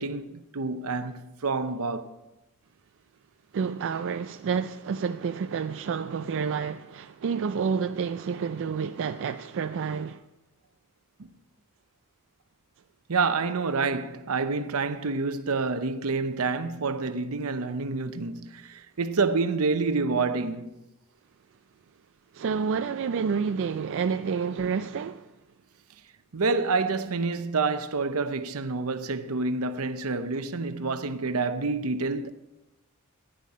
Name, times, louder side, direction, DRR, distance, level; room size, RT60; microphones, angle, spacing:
voice 1, 0.0-2.1 11.2-11.3 13.1-20.7 26.3-32.3, right 4 dB, 75° right, 0.8 m, -28 dB
voice 2, 3.5-10.2 22.3-25.3, right 6 dB, 60° right, 0.4 m, -29 dB
14.5 x 10.5 x 4.2 m
head